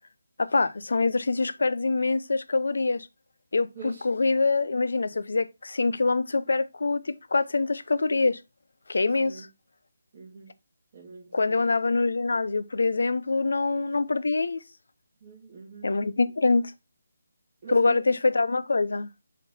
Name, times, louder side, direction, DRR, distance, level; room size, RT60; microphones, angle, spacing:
voice 1, 0.4-3.1 3.5-8.4 8.9-9.5 11.3-14.6 15.8-16.7 17.7-19.1, left 3 dB, 70° left, 0.7 m, -25 dB
voice 2, 3.7-4.1 9.0-9.5 10.1-10.5 10.9-11.6 15.2-15.9 17.6-18.2, right 6 dB, 25° right, 1.6 m, -44 dB
7.2 x 3.8 x 4.1 m
hypercardioid pair, 170°, 0 cm